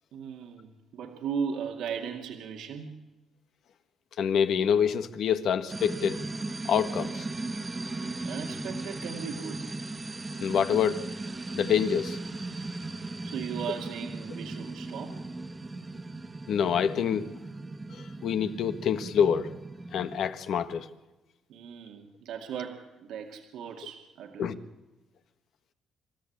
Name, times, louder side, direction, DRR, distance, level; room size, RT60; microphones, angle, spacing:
voice 1, 0.1-3.0 7.9-9.8 13.2-15.2 21.5-24.6, right 7 dB, 85° right, 2.2 m, -37 dB
voice 2, 4.2-6.2 6.7-7.2 10.4-11.0 11.5-12.2 16.5-17.3 17.9-19.5 19.9-20.9 24.4-24.6, left 8 dB, 70° left, 1.5 m, -26 dB
sound 1, 5.7-20.2, right 2 dB, 25° right, 1.1 m, -37 dB
27.0 x 13.5 x 8.7 m
cardioid pair, 90°, 0 cm